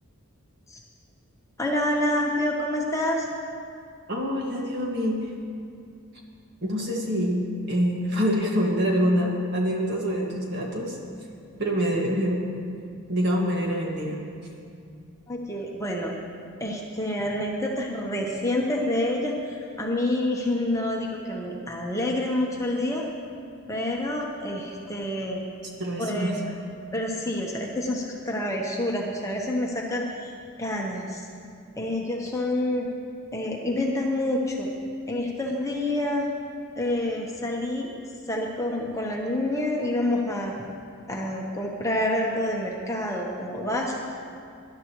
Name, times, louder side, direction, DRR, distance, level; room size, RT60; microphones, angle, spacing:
voice 1, 1.6-3.3 15.3-16.1 16.6-23.0 23.7-25.4 26.0-26.5 26.9-30.3 30.6-31.2 31.8-32.9 33.3-34.7 35.1-36.3 36.8-37.9 38.3-40.5 41.1-44.0, left 1 dB, 15° left, -1 dB, 1.0 m, -27 dB
voice 2, 4.1-5.3 6.6-7.4 7.7-11.0 11.6-12.4 13.1-14.2 25.8-26.3, equal, 50° right, -1 dB, 1.9 m, -25 dB
20.0 x 11.5 x 3.1 m, 2.4 s
head